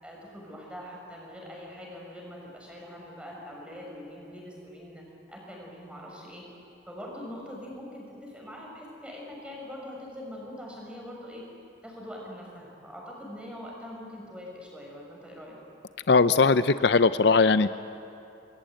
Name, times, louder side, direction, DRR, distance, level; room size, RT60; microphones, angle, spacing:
voice 1, 0.0-6.4 6.9-11.5 11.8-15.6, left 1 dB, 5° right, -2 dB, 6.2 m, -43 dB
voice 2, 16.1-17.7, left 4 dB, 65° left, 13 dB, 0.6 m, -20 dB
27.5 x 21.5 x 9.0 m, 2.8 s
head